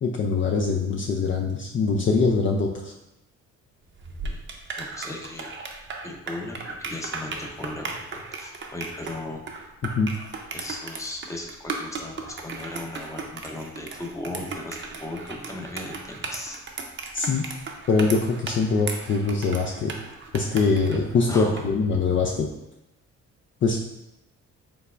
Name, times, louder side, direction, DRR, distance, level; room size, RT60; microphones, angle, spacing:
voice 1, 0.0-2.9 10.0-10.1 17.1-17.5 17.9-19.9 20.3-22.5 23.6-23.8, left 4 dB, 40° left, 0 dB, 0.5 m, -23 dB
sound 1, 3.9-21.7, right 4 dB, 40° right, 0.7 m, -36 dB
voice 2, 4.0-4.5 4.8-5.5 6.0-9.4 10.5-16.6 21.3-21.7, left 1 dB, 10° left, 1 dB, 0.7 m, -37 dB
5.2 x 3.4 x 2.5 m, 0.90 s
cardioid pair, 90°, 30 cm